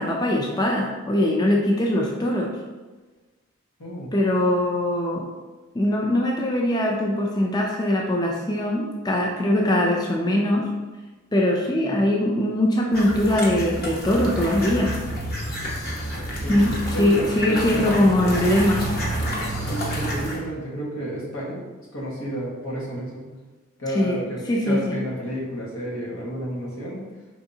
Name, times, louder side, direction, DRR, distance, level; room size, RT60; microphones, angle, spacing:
voice 1, 0.0-2.5 4.1-5.3 5.7-10.7 11.3-15.0 16.5-18.9 23.9-25.0, left 1 dB, 20° left, -1 dB, 0.4 m, -22 dB
voice 2, 3.8-4.2 11.8-12.0 16.4-18.0 19.7-21.6 21.9-23.2 23.8-24.4 24.6-27.0, right 1 dB, 90° left, -5 dB, 1.5 m, -31 dB
sound 1, 12.9-20.4, equal, 45° left, 0.9 m, -29 dB
4.8 x 3.5 x 2.7 m, 1.3 s
head